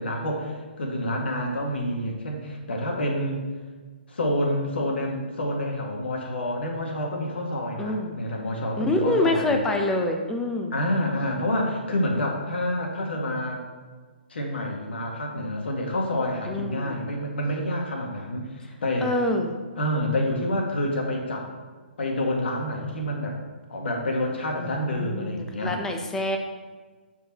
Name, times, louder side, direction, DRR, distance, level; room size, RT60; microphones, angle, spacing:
voice 1, 0.0-3.4 4.1-9.6 10.7-13.6 14.3-19.2 19.8-21.5 22.0-23.4 23.7-25.7, left 1 dB, 80° left, 0 dB, 1.9 m, -28 dB
voice 2, 7.8-8.2 8.8-10.7 16.5-17.0 19.0-19.5 24.6-26.4, left 1 dB, 10° left, 3 dB, 0.7 m, -26 dB
13.5 x 4.7 x 3.0 m, 1.4 s
hypercardioid pair, 150°, 6 cm